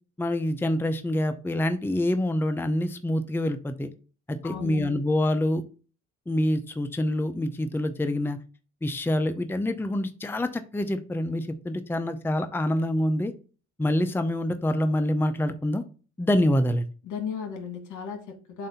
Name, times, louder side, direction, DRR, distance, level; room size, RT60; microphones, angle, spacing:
voice 1, 0.2-3.9 4.3-5.6 6.3-8.4 8.8-13.3 13.8-15.8 16.2-16.9, left 1 dB, 5° left, 9 dB, 0.6 m, -26 dB
voice 2, 4.4-5.0 17.0-18.7, left 6 dB, 75° left, 5 dB, 1.8 m, -35 dB
7.5 x 2.7 x 5.5 m, 0.37 s
cardioid pair, 90°, 30 cm